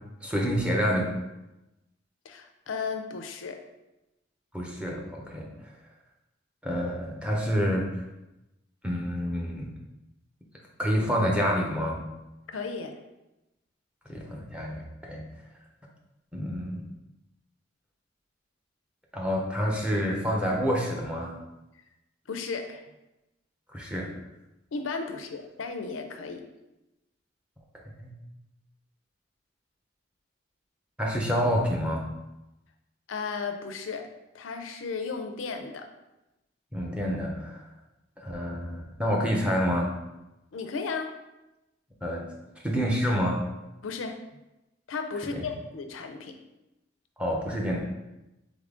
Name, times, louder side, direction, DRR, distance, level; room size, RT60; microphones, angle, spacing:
voice 1, 0.2-1.2 4.5-5.5 6.6-7.9 8.8-9.7 10.8-12.0 14.1-15.2 16.3-16.8 19.1-21.3 23.7-24.1 28.0-28.1 31.0-32.1 36.7-37.6 38.2-40.0 42.0-42.2 42.6-43.4 45.4-45.5 47.2-47.8, equal, 5° right, -2 dB, 0.7 m, -28 dB
voice 2, 2.2-3.6 12.5-13.0 22.3-22.8 24.7-26.4 33.1-34.1 34.3-35.9 40.5-41.1 43.8-44.2 44.9-46.4, left 4 dB, 85° left, 6 dB, 0.5 m, -34 dB
3.9 x 3.7 x 3.7 m, 0.96 s
head